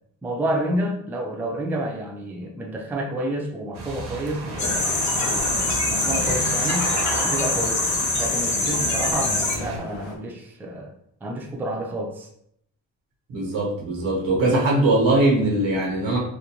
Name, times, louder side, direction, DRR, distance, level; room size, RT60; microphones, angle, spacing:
voice 1, 0.2-6.8 7.2-7.9 8.1-10.9 11.2-12.3, right 1 dB, 5° right, 0 dB, 0.4 m, -29 dB
sound 1, 3.7-9.8, right 3 dB, 60° right, 0.7 m, -32 dB
sound 2, 4.5-10.2, left 3 dB, 85° left, 0.6 m, -38 dB
sound 3, 4.6-9.5, left 3 dB, 40° left, 0.6 m, -24 dB
voice 2, 13.3-16.2, right 2 dB, 85° right, -2 dB, 1.0 m, -21 dB
2.4 x 2.2 x 2.9 m, 0.71 s
cardioid pair, 85°, 44 cm